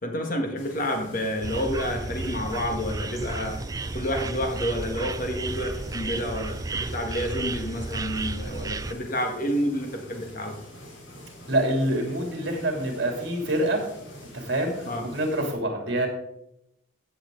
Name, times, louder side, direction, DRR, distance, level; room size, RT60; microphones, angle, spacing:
voice 1, 0.0-3.6 3.9-10.6 14.9-15.1, equal, 45° left, 3 dB, 1.7 m, -29 dB
sound 1, 0.6-15.5, left 1 dB, 75° left, 4.2 m, -46 dB
sound 2, 1.4-8.9, right 3 dB, 15° right, 0.3 m, -33 dB
voice 2, 11.5-13.8 14.3-16.1, right 1 dB, 60° right, 2 dB, 3.1 m, -26 dB
15.0 x 8.1 x 3.9 m, 0.79 s
head